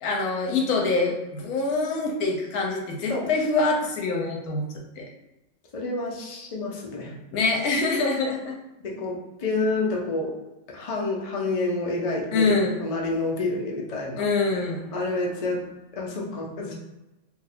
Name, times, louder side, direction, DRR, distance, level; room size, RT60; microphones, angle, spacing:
voice 1, 0.0-4.6 5.0-5.1 7.3-8.6 12.3-12.8 14.2-14.9, left 3 dB, 85° left, 0 dB, 1.2 m, -25 dB
voice 2, 5.7-7.1 8.8-10.3 10.7-14.2 14.9-15.6 15.9-16.7, left 2 dB, 45° left, -2 dB, 0.4 m, -28 dB
2.6 x 2.5 x 4.1 m, 0.98 s
omnidirectional pair, 1.6 m